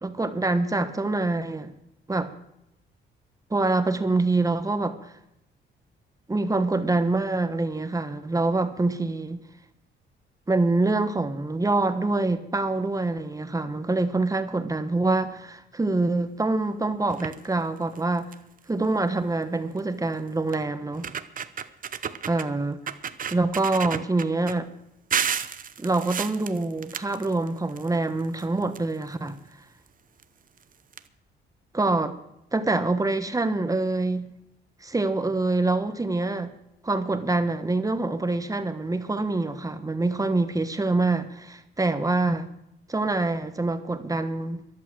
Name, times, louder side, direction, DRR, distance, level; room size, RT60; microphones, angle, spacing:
voice 1, 0.0-1.7 2.1-2.3 3.5-5.1 6.3-9.4 10.5-18.3 18.7-21.1 22.3-22.8 23.3-24.7 25.8-29.4 31.7-32.2 32.5-34.3 34.8-36.5 36.8-42.5 42.9-44.6, right 2 dB, 15° right, 1.3 m, -25 dB
sound 1, 17.1-17.5 18.0-18.1 18.3-18.6 19.8-19.9 20.5-20.6 20.9-22.5 22.9-24.5 25.1-27.9 28.2-29.3 30.2-30.3 30.6-30.7 30.9-31.0, right 7 dB, 45° right, 0.8 m, -32 dB
14.0 x 11.0 x 6.3 m
cardioid pair, 90°, 20 cm